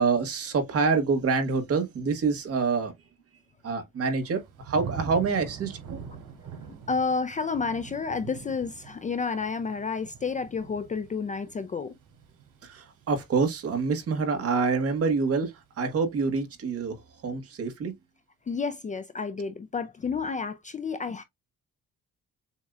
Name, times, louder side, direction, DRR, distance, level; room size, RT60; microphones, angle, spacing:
voice 1, 0.0-2.9 3.6-6.0 12.6-17.9, right 4 dB, 50° right, 1.5 m, -26 dB
Thunder / Rain, 4.2-15.1 15.6-16.0, right 7 dB, 85° right, 2.7 m, -44 dB
voice 2, 6.9-11.9 18.5-21.2, left 5 dB, 25° left, 0.4 m, -30 dB
7.2 x 2.8 x 2.4 m
cardioid pair, 160°, 31 cm